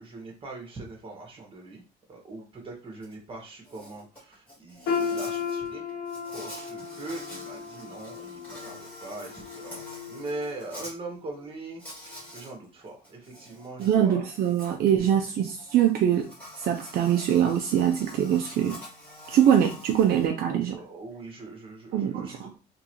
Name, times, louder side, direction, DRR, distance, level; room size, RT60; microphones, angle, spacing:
voice 1, 0.0-1.8 2.1-5.8 6.3-14.2 14.9-15.1 19.3-19.4 20.4-22.6, right 2 dB, 30° right, 1 dB, 1.8 m, -41 dB
Insect, 3.0-3.1 3.5-10.9 11.8-12.5 12.9-20.3, left 1 dB, 10° left, 2.4 m, -46 dB
sound 1, 4.9-10.8 11.2-11.4 12.2-12.3, left 6 dB, 80° left, 1.1 m, -35 dB
voice 2, 13.8-16.3 16.6-18.8 19.3-20.8 21.9-22.5, right 9 dB, 65° right, 3 dB, 0.7 m, -23 dB
3.7 x 3.3 x 3.1 m, 0.32 s
cardioid pair, 110°, 17 cm